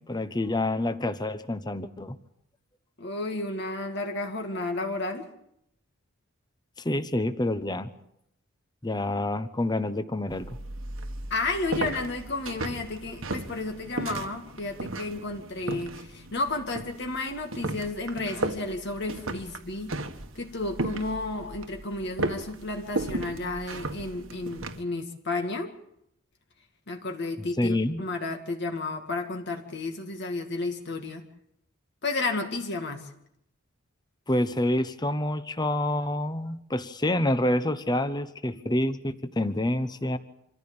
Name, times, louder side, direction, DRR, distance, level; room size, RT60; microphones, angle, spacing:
voice 1, 0.0-2.2 6.8-7.9 8.8-10.6 27.4-28.0 34.3-40.2, left 1 dB, 20° left, 12 dB, 1.0 m, -27 dB
voice 2, 3.0-5.2 11.3-19.9 20.4-25.7 26.9-31.2 32.0-33.1, left 2 dB, 55° left, 4 dB, 2.1 m, -32 dB
sound 1, 10.3-24.8, right 2 dB, 75° right, 1.6 m, -35 dB
26.0 x 15.0 x 8.8 m, 0.76 s
head